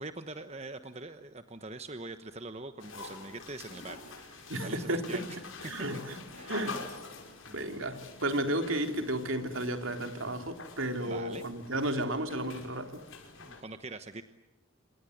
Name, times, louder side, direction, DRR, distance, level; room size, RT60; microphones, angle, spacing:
voice 1, 0.0-5.4 6.3-6.6 7.5-7.7 11.0-11.4 12.7-12.8 13.4-14.2, right 2 dB, 30° right, 9 dB, 1.1 m, -43 dB
sound 1, 2.8-13.6, left 4 dB, 70° left, 5.8 m, -46 dB
voice 2, 4.5-5.2 5.7-6.2 6.5-6.8 7.5-13.0, right 1 dB, 70° right, 6 dB, 3.4 m, -33 dB
27.5 x 26.5 x 8.0 m, 0.89 s
head